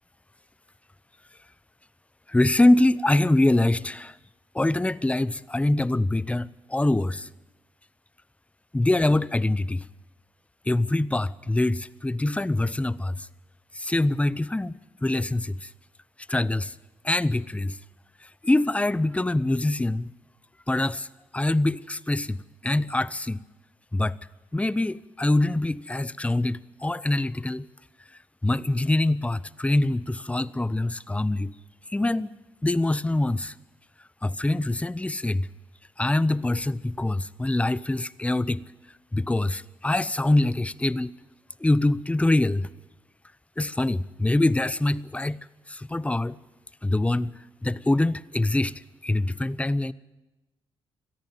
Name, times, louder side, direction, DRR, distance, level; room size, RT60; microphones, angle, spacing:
voice 1, 2.3-4.2 4.5-7.3 8.7-9.9 10.7-13.3 13.7-15.7 16.3-16.7 17.0-17.8 18.2-20.1 20.7-21.1 21.3-22.4 22.6-23.4 23.9-24.2 24.5-27.7 28.4-31.5 31.9-32.3 32.6-33.5 34.2-35.5 36.0-38.6 39.1-41.1 41.6-42.7 43.6-45.4 45.7-46.4 46.8-47.3 47.6-49.9, left 2 dB, 15° left, 0.7 m, -24 dB
21.5 x 14.0 x 9.1 m
supercardioid pair, 55°, 10 cm